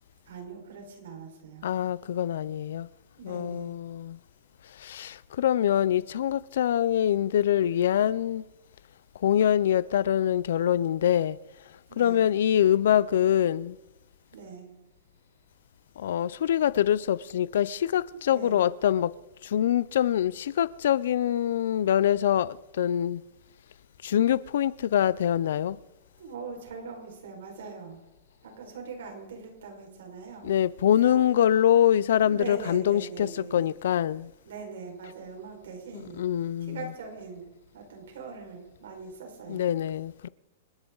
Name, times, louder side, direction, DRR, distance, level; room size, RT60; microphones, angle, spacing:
voice 1, 0.3-1.7 3.2-3.7 11.9-12.2 14.3-14.7 18.0-18.6 26.2-28.0 28.4-30.5 31.0-31.2 32.3-33.7 34.5-36.2 36.6-37.4 37.7-39.7, right 5 dB, 75° right, 5.3 m, -42 dB
voice 2, 1.6-2.9 3.2-4.2 4.7-8.4 9.2-11.4 12.0-13.8 16.0-19.1 19.4-23.2 24.0-25.8 30.4-34.3 35.9-36.9 39.5-40.3, left 10 dB, 70° left, 0.5 m, -24 dB
28.0 x 10.5 x 4.0 m
supercardioid pair, 170°, 0 cm